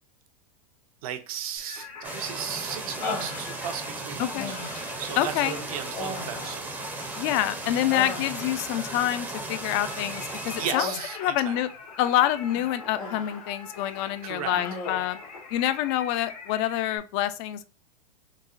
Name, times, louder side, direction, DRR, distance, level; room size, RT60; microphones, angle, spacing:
voice 1, 1.0-4.3 5.0-6.7 10.6-11.6 14.2-14.6, right 9 dB, 70° right, 0.7 m, -35 dB
Singing, 1.6-17.0, left 4 dB, 90° left, 1.2 m, -44 dB
sound 1, 2.0-10.8, right 2 dB, 10° right, 0.5 m, -36 dB
Human voice, 3.0-3.9 4.4-5.1 5.9-7.3 7.7-8.7 10.7-11.4 12.4-13.5 13.8-14.0 14.5-15.2, left 3 dB, 70° left, 1.3 m, -37 dB
voice 2, 4.2-4.5 5.2-5.5 7.2-10.9 11.2-11.7 12.0-15.2 15.5-17.7, left 13 dB, 45° left, 0.4 m, -27 dB
3.9 x 2.1 x 2.5 m
hypercardioid pair, 125°, 20 cm